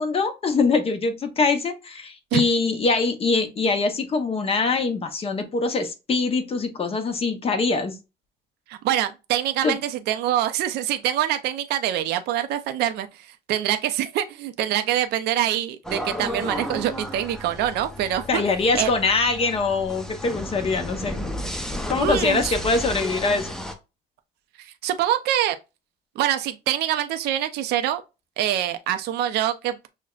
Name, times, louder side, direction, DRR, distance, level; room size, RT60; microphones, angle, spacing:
voice 1, 0.0-8.0 9.6-9.8 18.3-21.3 21.9-23.5, left 4 dB, 35° left, 0.8 m, -23 dB
voice 2, 8.7-13.1 13.5-18.4 18.7-18.9 22.0-22.5 24.8-25.6 26.2-28.0 28.4-29.8, right 11 dB, 75° right, 0.5 m, -25 dB
sound 1, 15.8-23.7, left 1 dB, 5° left, 0.6 m, -33 dB
6.2 x 2.1 x 2.3 m
cardioid pair, 110°, 17 cm